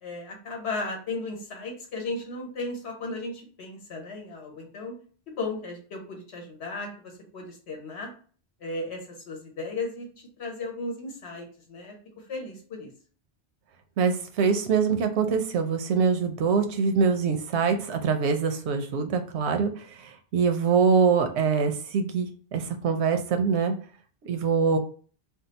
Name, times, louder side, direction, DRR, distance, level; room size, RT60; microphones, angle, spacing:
voice 1, 0.0-4.9 5.3-8.1 8.6-11.9 12.3-12.9, left 3 dB, 80° left, 1 dB, 1.2 m, -35 dB
voice 2, 14.0-23.7 24.2-24.8, right 5 dB, 90° right, 6 dB, 0.9 m, -24 dB
2.7 x 2.0 x 3.9 m, 0.42 s
omnidirectional pair, 1.1 m